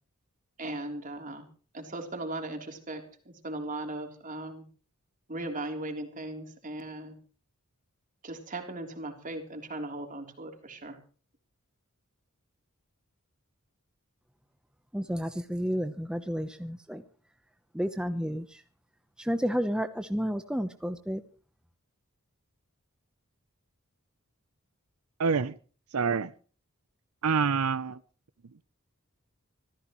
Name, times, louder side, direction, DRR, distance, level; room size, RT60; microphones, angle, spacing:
voice 1, 0.6-1.5 1.7-4.6 5.3-7.2 8.2-11.0, right 2 dB, 35° right, 4 dB, 3.5 m, -38 dB
voice 2, 14.9-17.0 17.7-18.6 19.2-21.2, equal, 5° right, 8 dB, 0.8 m, -31 dB
voice 3, 25.2-25.5 25.9-26.3 27.2-28.0, right 5 dB, 80° right, 15 dB, 0.7 m, -26 dB
25.5 x 15.0 x 3.1 m, 0.40 s
head